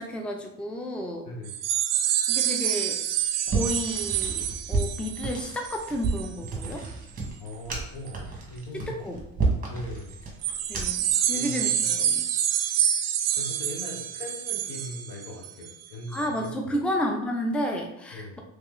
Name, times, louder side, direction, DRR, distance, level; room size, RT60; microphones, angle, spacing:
voice 1, 0.0-1.3 2.3-3.0 3.5-6.9 8.8-9.2 10.7-12.3 16.1-18.4, equal, 5° left, 2 dB, 0.5 m, -31 dB
sound 1, 1.5-6.9 7.2-7.5 8.1-8.2 10.4-15.7 16.1-16.3, right 10 dB, 50° right, 0.4 m, -27 dB
sound 2, 3.5-11.1, right 3 dB, 25° right, 1.3 m, -31 dB
voice 2, 7.4-8.9 9.7-10.2 11.3-11.9 12.3-12.4 13.4-16.8 18.1-18.4, left 1 dB, 75° left, -1 dB, 1.3 m, -40 dB
3.2 x 3.0 x 3.7 m, 0.79 s
supercardioid pair, 90°, 35 cm